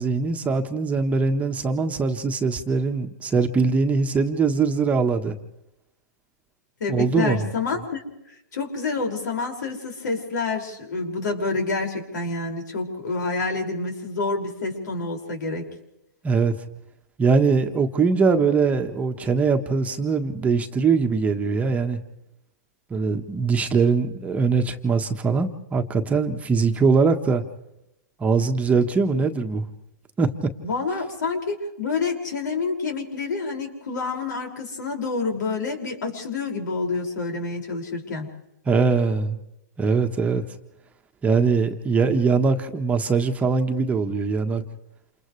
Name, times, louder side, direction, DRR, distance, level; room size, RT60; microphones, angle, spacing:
voice 1, 0.0-5.4 6.9-7.4 16.2-16.5 17.2-22.0 22.9-27.4 28.2-29.7 30.2-30.3 38.6-39.4 39.8-40.4 41.2-44.6, right 4 dB, 15° right, 4 dB, 1.4 m, -22 dB
voice 2, 6.8-8.0 8.3-15.7 30.6-38.3, left 4 dB, 75° left, 2 dB, 6.0 m, -28 dB
28.5 x 28.5 x 3.3 m, 0.86 s
hypercardioid pair, 135°, 10 cm